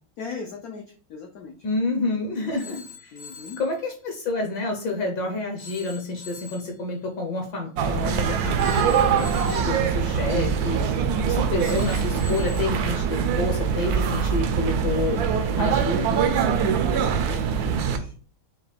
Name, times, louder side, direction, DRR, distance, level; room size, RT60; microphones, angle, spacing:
voice 1, 0.2-1.5 2.3-3.6 17.0-18.1, left 5 dB, 85° left, 3 dB, 0.8 m, -39 dB
voice 2, 1.6-3.1 3.6-10.8 11.2-15.2 15.5-16.4, left 2 dB, 70° left, 3 dB, 1.4 m, -29 dB
Telephone, 2.6-3.7 5.6-6.7 8.6-9.8 11.6-12.8, left 5 dB, 25° right, 0.4 m, -44 dB
sound 1, 7.8-18.0, right 7 dB, 80° right, 0.8 m, -23 dB
5.5 x 2.3 x 3.4 m, 0.43 s
omnidirectional pair, 2.2 m